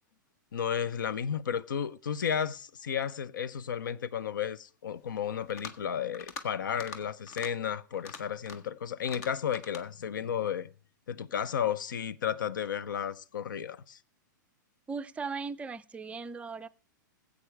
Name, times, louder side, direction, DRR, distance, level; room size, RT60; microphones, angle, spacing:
voice 1, 0.5-10.7 11.1-14.0, left 8 dB, 80° left, 0.6 m, -33 dB
sound 1, 5.4-5.8 6.1-6.5 6.7-7.0 7.3-7.5 7.9-8.7 9.1-9.8, left 5 dB, 50° left, 1.5 m, -43 dB
voice 2, 14.9-16.7, right 4 dB, 10° right, 0.4 m, -38 dB
16.0 x 8.2 x 3.4 m
hypercardioid pair, 120°, 11 cm